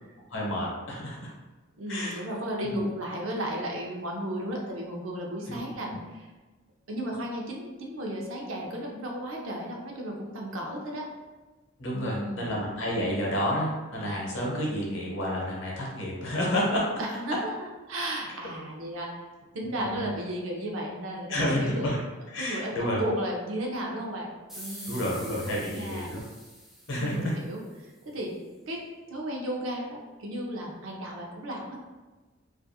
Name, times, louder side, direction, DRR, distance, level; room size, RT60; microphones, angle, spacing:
voice 1, 0.3-1.3 1.9-2.2 2.6-2.8 5.5-5.6 5.9-6.0 11.8-16.8 19.8-20.2 21.3-22.0 22.3-23.0 24.9-26.2 26.9-27.2, equal, 60° left, -3 dB, 0.7 m, -30 dB
voice 2, 1.7-6.3 6.9-11.1 11.9-12.5 17.0-17.5 17.9-19.1 19.5-21.9 22.4-26.1 27.0-28.3 28.7-28.8 29.1-31.8, equal, 75° right, -1 dB, 0.5 m, -34 dB
sound 1, 24.5-27.8, equal, ahead, 0.3 m, -45 dB
2.4 x 2.3 x 2.6 m, 1.3 s
head